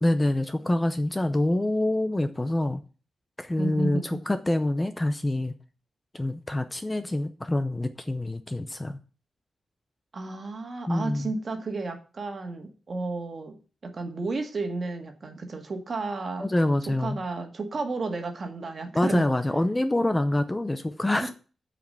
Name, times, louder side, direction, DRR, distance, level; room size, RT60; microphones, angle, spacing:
voice 1, 0.0-2.8 3.4-5.5 6.1-9.0 10.9-11.3 16.4-17.2 18.9-21.3, left 1 dB, 15° left, 9 dB, 0.6 m, -26 dB
voice 2, 3.6-4.0 10.1-13.6 13.8-16.5 16.9-19.3 21.2-21.3, right 3 dB, 40° right, 6 dB, 1.8 m, -32 dB
8.7 x 5.0 x 7.7 m, 0.36 s
wide cardioid pair, 145°, 0 cm